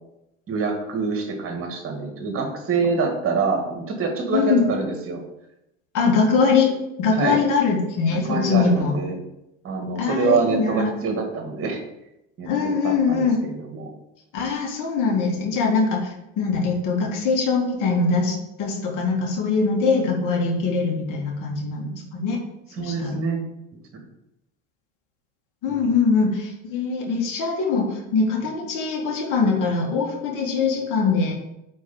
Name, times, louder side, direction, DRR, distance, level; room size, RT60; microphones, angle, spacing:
voice 1, 0.5-5.2 7.1-7.4 8.3-9.2 9.6-11.8 12.4-12.5 12.8-13.2 13.5-13.9 22.8-23.4 23.9-24.0 25.7-25.9, right 4 dB, 35° right, 2 dB, 2.0 m, -25 dB
voice 2, 4.3-4.7 5.9-9.0 10.0-10.9 12.4-13.4 14.3-22.4 22.8-23.2 25.6-31.3, left 4 dB, 55° left, -1 dB, 1.9 m, -22 dB
4.6 x 4.5 x 5.9 m, 0.86 s
hypercardioid pair, 90°, 39 cm